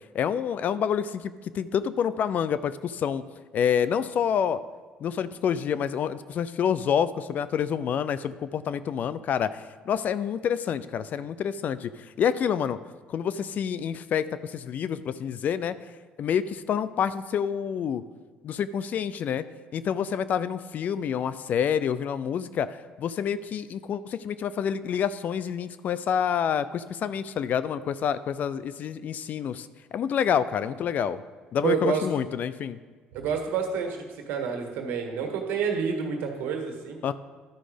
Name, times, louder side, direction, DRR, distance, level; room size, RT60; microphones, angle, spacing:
voice 1, 0.1-3.2 3.5-4.6 5.0-11.9 12.2-12.8 13.1-15.7 16.2-18.0 18.4-19.4 19.7-31.2 31.5-32.8 37.0-37.1, left 8 dB, 55° left, 15 dB, 0.4 m, -28 dB
voice 2, 31.6-32.0 33.1-37.0, right 6 dB, 75° right, 3 dB, 1.6 m, -28 dB
12.0 x 5.0 x 5.0 m, 1.5 s
supercardioid pair, 80°, 3 cm